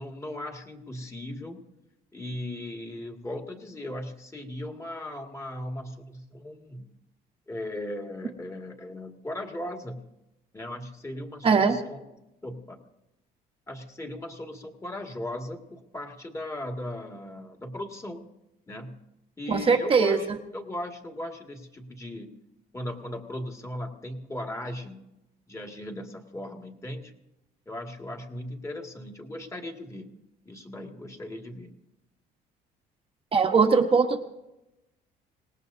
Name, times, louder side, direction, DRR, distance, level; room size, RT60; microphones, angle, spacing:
voice 1, 0.0-1.7 2.1-6.8 7.5-10.1 10.5-12.0 12.4-12.8 13.7-18.3 18.7-19.0 19.4-22.3 22.7-25.0 25.5-27.1 27.7-30.2 30.5-31.7, left 1 dB, 15° left, 3 dB, 2.1 m, -38 dB
voice 2, 11.4-11.8 19.5-20.4 33.3-34.2, right 5 dB, 35° right, 3 dB, 1.1 m, -21 dB
26.0 x 19.0 x 2.7 m, 0.94 s
cardioid pair, 110°, 17 cm